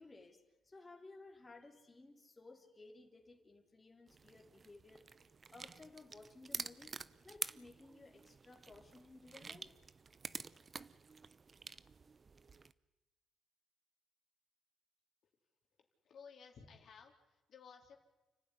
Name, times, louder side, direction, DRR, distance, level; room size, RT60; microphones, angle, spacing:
voice 1, 0.0-5.2 5.5-9.7, left 2 dB, 20° left, 1 dB, 3.2 m, -58 dB
sound 1, 4.1-12.7, right 5 dB, 35° right, 0.7 m, -49 dB
voice 2, 15.8-18.0, left 6 dB, 60° left, 2 dB, 3.4 m, -57 dB
29.5 x 12.0 x 9.9 m, 1.1 s
cardioid pair, 90°, 0 cm